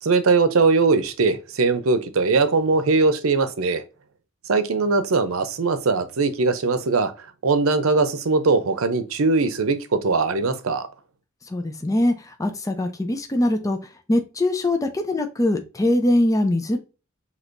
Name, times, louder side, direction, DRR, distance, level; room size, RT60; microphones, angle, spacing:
voice 1, 0.0-3.8 4.5-7.1 7.4-10.9, right 4 dB, 90° right, 0.6 m, -20 dB
voice 2, 11.5-13.8 14.1-16.8, left 1 dB, 15° left, 0.5 m, -22 dB
6.1 x 2.9 x 2.5 m
head